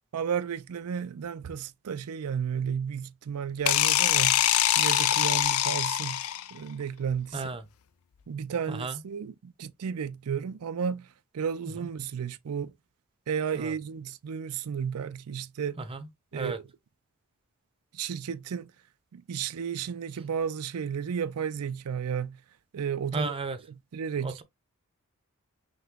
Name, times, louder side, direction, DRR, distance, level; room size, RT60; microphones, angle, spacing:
voice 1, 0.1-4.4 4.8-6.2 6.5-7.5 8.3-11.1 11.3-12.7 13.3-15.8 16.3-16.6 17.9-18.7 19.1-22.4 22.7-23.3 23.9-24.4, right 7 dB, 85° right, 0.4 m, -33 dB
sound 1, 3.7-6.6, left 12 dB, 75° left, 0.4 m, -24 dB
voice 2, 8.7-9.0 13.5-13.7 15.9-16.0 16.3-16.6 23.1-23.6 24.2-24.4, right 3 dB, 25° right, 0.6 m, -33 dB
5.7 x 2.1 x 3.6 m
head